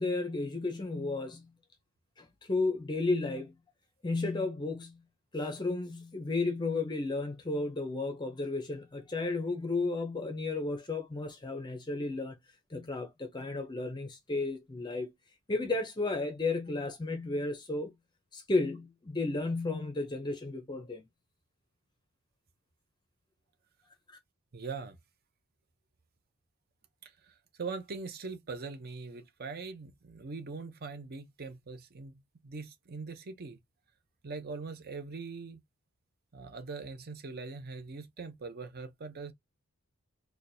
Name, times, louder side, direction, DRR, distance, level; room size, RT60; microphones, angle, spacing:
voice 1, 0.0-1.5 2.2-3.5 4.0-5.0 5.3-12.4 12.7-15.1 15.5-17.9 18.3-21.0 24.1-24.2, left 3 dB, 20° left, 0.5 m, -33 dB
voice 2, 24.5-25.0 27.0-32.1 32.4-33.6 34.2-35.6 36.3-39.3, right 4 dB, 45° right, 0.6 m, -42 dB
4.3 x 2.2 x 2.6 m
head